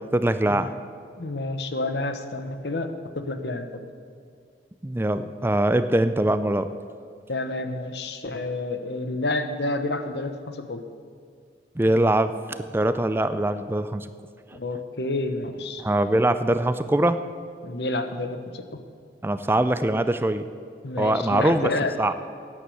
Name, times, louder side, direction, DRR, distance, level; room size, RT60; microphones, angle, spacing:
voice 1, 0.1-0.7 4.8-6.7 11.8-14.1 15.8-17.2 19.2-20.4 21.0-21.7 22.0-22.1, right 1 dB, 15° right, 11 dB, 0.4 m, -22 dB
voice 2, 1.2-3.8 7.3-10.8 14.5-15.8 17.6-18.6 20.8-22.0, left 2 dB, 75° left, 8 dB, 1.1 m, -29 dB
11.5 x 9.8 x 7.8 m, 2.2 s
head